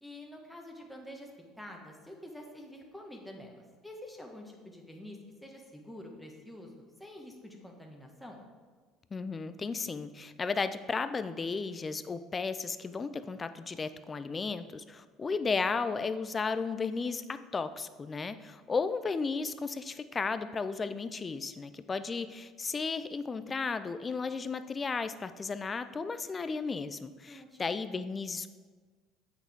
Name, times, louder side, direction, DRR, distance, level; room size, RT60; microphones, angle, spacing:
voice 1, 0.0-8.4 27.3-27.7, left 1 dB, 5° left, 1 dB, 1.4 m, -48 dB
voice 2, 9.1-28.5, left 4 dB, 30° left, 12 dB, 0.5 m, -34 dB
8.0 x 6.0 x 3.6 m, 1.5 s
hypercardioid pair, 70°, 0 cm